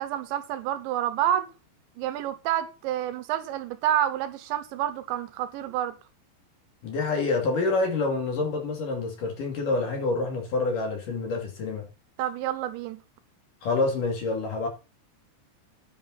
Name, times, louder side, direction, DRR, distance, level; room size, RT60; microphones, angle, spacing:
voice 1, 0.0-1.5 2.0-5.9 12.2-13.0, right 11 dB, 80° right, 3.0 m, -28 dB
voice 2, 6.8-11.9 13.6-14.7, left 3 dB, 50° left, 3.7 m, -27 dB
10.5 x 10.0 x 4.1 m
omnidirectional pair, 5.4 m